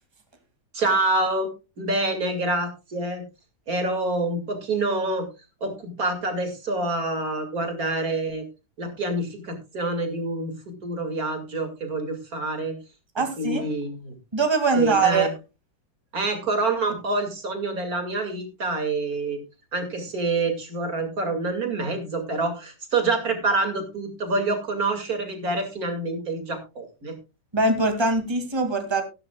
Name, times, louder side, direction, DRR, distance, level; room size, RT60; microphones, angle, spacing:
voice 1, 0.7-1.5 1.8-3.2 3.7-5.3 5.6-8.4 8.8-12.8 13.4-14.1 14.7-15.3 16.1-19.4 19.7-27.2, right 2 dB, 55° right, 6 dB, 2.9 m, -27 dB
voice 2, 13.1-13.7 14.3-15.3 27.5-29.0, right 3 dB, 15° right, 6 dB, 2.3 m, -22 dB
14.5 x 13.0 x 2.3 m, 0.28 s
omnidirectional pair, 1.8 m